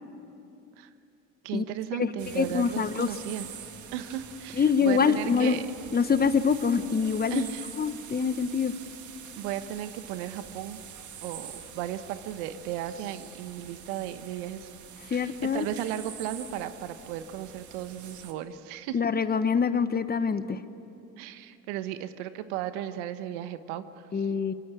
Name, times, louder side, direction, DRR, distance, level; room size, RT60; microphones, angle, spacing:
voice 1, 1.4-3.5 3.9-5.7 7.3-7.7 9.3-10.8 11.2-14.7 15.0-19.0 21.2-24.3, right 11 dB, 70° right, 12 dB, 1.3 m, -35 dB
voice 2, 2.0-3.1 4.6-5.6 5.9-7.4 7.8-8.7 15.1-15.7 18.9-20.6 24.1-24.5, left 6 dB, 25° left, 12 dB, 1.2 m, -25 dB
sound 1, 2.2-18.3, right 8 dB, 50° right, 2.4 m, -45 dB
26.0 x 23.5 x 8.4 m, 2.7 s
hypercardioid pair, 70°, 37 cm